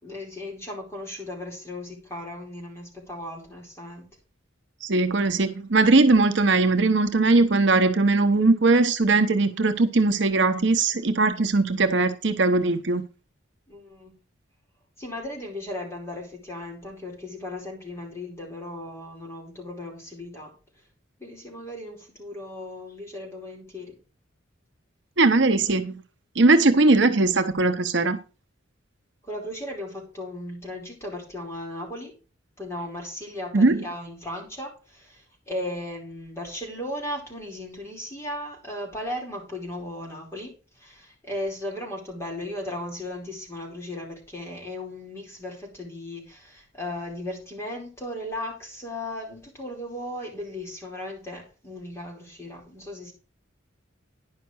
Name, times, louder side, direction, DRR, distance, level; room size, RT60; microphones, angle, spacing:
voice 1, 0.0-4.0 13.7-14.2 15.0-20.5 21.2-24.0 26.6-26.7 29.2-32.1 32.6-40.5 40.8-53.1, left 1 dB, 15° left, 4.7 m, -36 dB
voice 2, 4.8-13.0 25.2-26.0 26.4-28.2 33.5-33.8, right 3 dB, 60° right, 0.8 m, -20 dB
10.5 x 5.8 x 6.2 m
head